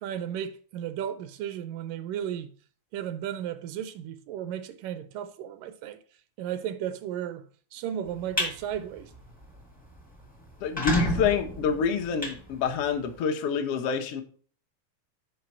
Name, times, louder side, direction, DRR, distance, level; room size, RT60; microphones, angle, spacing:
voice 1, 0.0-2.5 2.9-6.0 6.4-7.4 7.7-9.1, right 10 dB, 80° right, 2.2 m, -34 dB
sound 1, 8.1-8.5 9.0-9.2 9.6-9.7 9.9-10.0 10.5-13.1, left 1 dB, 5° left, 0.6 m, -30 dB
voice 2, 10.6-14.2, left 6 dB, 70° left, 1.4 m, -27 dB
7.9 x 5.1 x 5.7 m
omnidirectional pair, 3.9 m